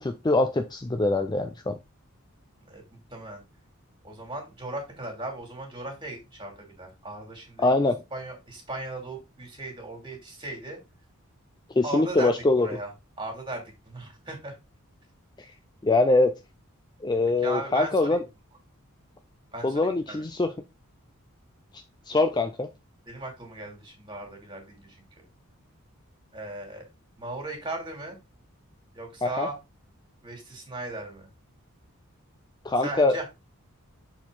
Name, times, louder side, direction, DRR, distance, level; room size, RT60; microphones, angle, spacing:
voice 1, 0.0-1.8 7.6-8.0 11.8-12.7 15.8-16.3 17.0-18.2 19.6-20.5 21.7-22.7 29.2-29.5 32.6-33.2, left 2 dB, 20° left, 7 dB, 0.4 m, -23 dB
voice 2, 2.6-3.4 4.0-7.7 8.1-10.8 11.8-12.9 13.2-14.6 17.4-18.2 19.5-20.2 23.1-25.0 26.3-26.9 27.2-28.2 28.9-29.6 30.2-31.3 32.8-33.3, right 2 dB, 20° right, 1 dB, 2.7 m, -37 dB
7.2 x 4.5 x 3.8 m, 0.25 s
head